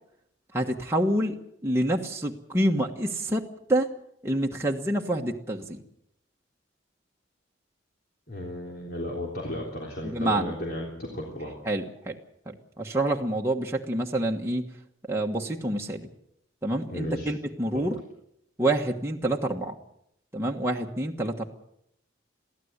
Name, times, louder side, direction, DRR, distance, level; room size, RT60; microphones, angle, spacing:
voice 1, 0.5-3.9 4.2-5.8 10.0-10.5 11.6-12.1 12.5-14.7 15.1-16.0 16.6-18.0 18.6-19.8 20.3-21.5, right 1 dB, 15° right, 0 dB, 1.3 m, -27 dB
voice 2, 8.3-11.5 16.9-17.3 17.7-17.8, left 1 dB, 50° left, -1 dB, 3.6 m, -34 dB
23.0 x 15.5 x 8.1 m, 0.75 s
head